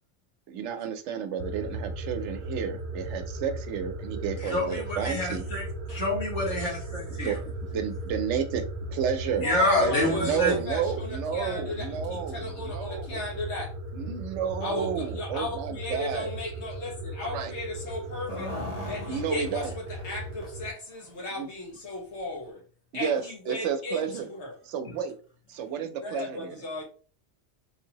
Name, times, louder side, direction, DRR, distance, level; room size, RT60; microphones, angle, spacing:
voice 1, 0.5-5.4 7.2-7.4 7.7-8.6 8.9-9.5 9.8-13.2 13.9-16.3 17.2-17.5 19.1-19.7 21.3-21.5 22.9-24.3 24.6-25.1 25.5-26.6, right 7 dB, 85° right, 8 dB, 0.9 m, -31 dB
sound 1, 1.4-20.7, right 1 dB, 60° right, 0.6 m, -37 dB
voice 2, 4.4-7.3 9.4-10.6, left 1 dB, 90° left, -3 dB, 1.9 m, -27 dB
voice 3, 9.4-13.7 14.6-18.5 18.9-22.6 22.9-24.6 26.0-26.8, left 2 dB, 75° left, -1 dB, 1.5 m, -35 dB
sound 2, 18.1-20.1 20.4-20.5 21.0-21.1 22.0-22.1 22.4-22.5, left 1 dB, 35° left, 1.3 m, -38 dB
3.8 x 2.7 x 2.8 m, 0.38 s
omnidirectional pair, 1.2 m